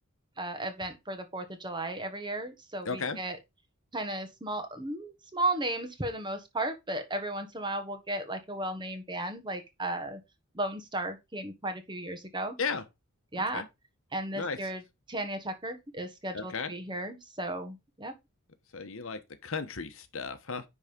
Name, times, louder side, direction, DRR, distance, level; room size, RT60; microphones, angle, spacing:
voice 1, 0.4-3.4 3.9-10.2 10.5-12.6 13.3-13.6 14.1-14.8 15.1-18.1, right 1 dB, 20° right, 1.4 m, -35 dB
voice 2, 2.8-3.2 12.6-12.8 13.3-13.6 14.3-14.6 16.3-16.7 18.7-20.6, left 5 dB, 65° left, 1.1 m, -35 dB
10.5 x 3.7 x 5.2 m
head